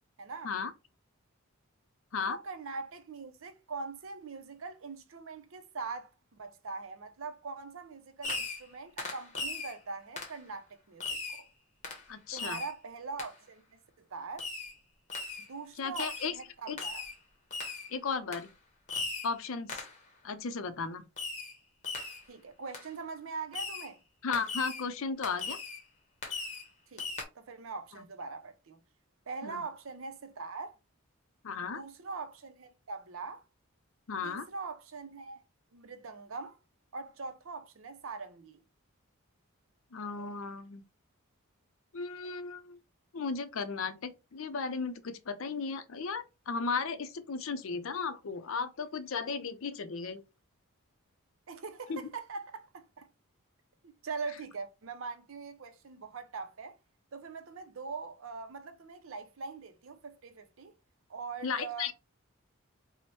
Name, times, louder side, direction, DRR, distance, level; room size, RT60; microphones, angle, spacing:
voice 1, 0.2-0.5 2.3-11.5 12.3-14.5 15.4-17.0 22.3-24.0 26.9-28.8 29.3-30.7 31.6-33.4 34.2-35.4 35.7-36.6 36.9-38.6 51.5-53.1 53.8-56.7 57.1-60.7 61.1-61.9, right 4 dB, 65° right, 0.5 m, -42 dB
Fireworks, 8.2-8.7 9.0-9.7 10.2-10.4 11.0-11.4 11.8-12.0 12.4-12.7 13.2-13.3 14.4-14.7 15.1-15.5 15.9-16.3 16.8-17.2 17.5-17.9 18.3-18.5 18.9-19.3 19.7-20.0 21.2-21.6 21.8-22.2 22.7-22.9 23.5-23.9 24.3-24.8 25.2-25.8 26.2-26.7 27.0-27.2, left 3 dB, 30° left, 0.8 m, -38 dB
voice 2, 12.1-12.6 15.8-16.4 16.7-16.8 17.9-18.5 19.2-19.8 20.2-21.0 24.2-25.6 29.4-29.6 31.4-31.8 34.1-34.5 39.9-40.8 41.9-42.8 43.1-50.2 51.9-52.0 61.4-61.9, left 5 dB, 65° left, 0.5 m, -35 dB
4.2 x 2.1 x 3.0 m
head